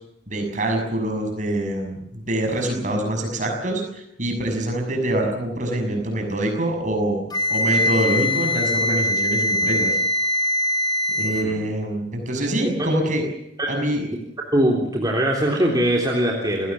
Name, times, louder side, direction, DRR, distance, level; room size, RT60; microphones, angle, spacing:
voice 1, 0.3-7.2 7.5-10.0 11.2-13.3 13.7-14.1, right 1 dB, 40° right, 3 dB, 6.6 m, -25 dB
Wind instrument woodwind instrument, 7.3-11.5, left 1 dB, 20° left, 2.5 m, -22 dB
voice 2, 14.5-16.7, right 1 dB, 20° right, -2 dB, 3.6 m, -21 dB
29.0 x 17.5 x 7.2 m, 0.79 s
head